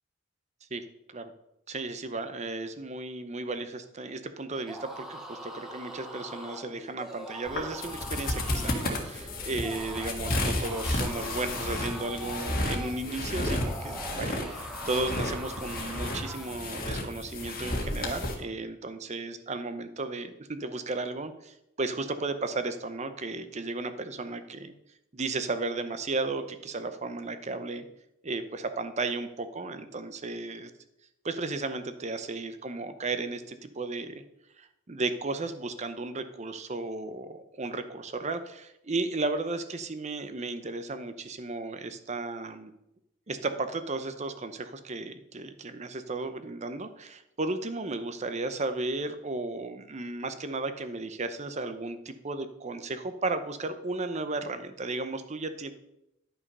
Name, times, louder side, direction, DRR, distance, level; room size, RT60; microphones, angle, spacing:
voice 1, 1.7-24.7 25.1-27.9 28.2-30.7 31.2-34.2 34.6-42.7 43.3-55.7, right 3 dB, 35° right, 10 dB, 0.7 m, -34 dB
sound 1, 4.5-16.6, right 1 dB, ahead, 1.0 m, -43 dB
sound 2, 7.5-18.3, left 1 dB, 45° left, 1.6 m, -32 dB
11.0 x 5.7 x 5.4 m, 0.84 s
head